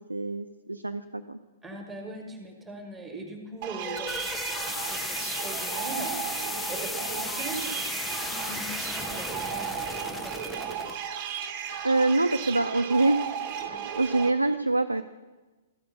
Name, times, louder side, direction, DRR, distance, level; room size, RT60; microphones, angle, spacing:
voice 1, 0.0-1.4 11.8-13.3 13.6-15.0, right 2 dB, 85° right, 8 dB, 0.3 m, -25 dB
voice 2, 1.6-9.9 10.1-10.8, right 2 dB, 10° right, 2 dB, 1.3 m, -41 dB
sound 1, 3.6-14.3, right 8 dB, 40° right, 0.6 m, -35 dB
cd-noise, 3.7-11.0, left 3 dB, 10° left, 0.5 m, -35 dB
13.0 x 4.4 x 5.3 m, 1.2 s
figure-of-eight pair, 110°, 0 cm